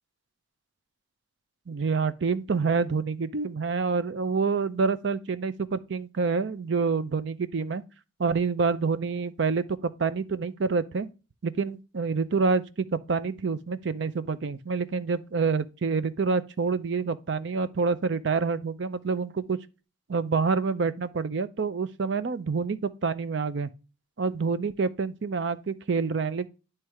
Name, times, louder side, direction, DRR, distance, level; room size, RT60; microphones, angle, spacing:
voice 1, 1.7-7.8 8.2-11.1 11.4-19.6 20.1-23.7 24.2-26.5, right 4 dB, 60° right, 0.5 m, -27 dB
9.5 x 3.3 x 4.6 m
head